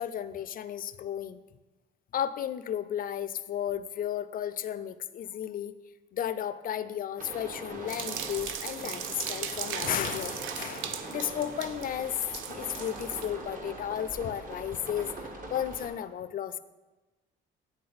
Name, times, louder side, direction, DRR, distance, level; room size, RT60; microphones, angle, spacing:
voice 1, 0.0-1.4 2.1-5.7 6.1-15.1 15.5-16.6, left 10 dB, 45° left, 13 dB, 0.4 m, -33 dB
sound 1, 7.2-15.9, right 2 dB, 45° right, 1.1 m, -42 dB
sound 2, 7.9-13.3, right 9 dB, 85° right, 0.4 m, -38 dB
8.5 x 3.6 x 4.0 m, 1.1 s
cardioid pair, 90°, 20 cm